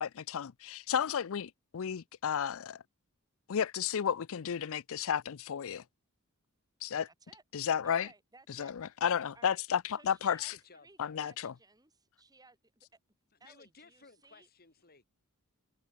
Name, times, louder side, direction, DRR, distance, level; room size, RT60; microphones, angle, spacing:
voice 1, 0.0-2.8 3.5-5.8 6.8-7.1 7.5-8.1 8.6-10.5 11.0-11.5, left 8 dB, 65° left, 0.5 m, -33 dB
voice 2, 7.1-7.4 7.8-8.7 9.3-9.6 9.9-12.9 13.4-14.5, right 3 dB, 15° right, 5.0 m, -60 dB
voice 3, 10.5-11.3 13.3-15.1, left 4 dB, 45° left, 3.6 m, -58 dB
head